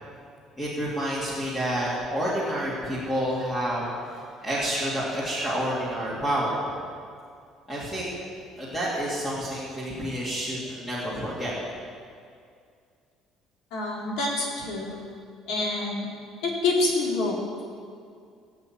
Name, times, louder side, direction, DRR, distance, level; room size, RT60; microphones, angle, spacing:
voice 1, 0.6-6.6 7.7-8.1 8.5-11.5, equal, 15° left, -8 dB, 2.8 m, -29 dB
voice 2, 13.7-15.0 15.5-16.1 16.4-17.6, left 2 dB, 65° left, -3 dB, 4.1 m, -27 dB
17.5 x 7.8 x 9.0 m, 2.2 s
cardioid pair, 175°, 0 cm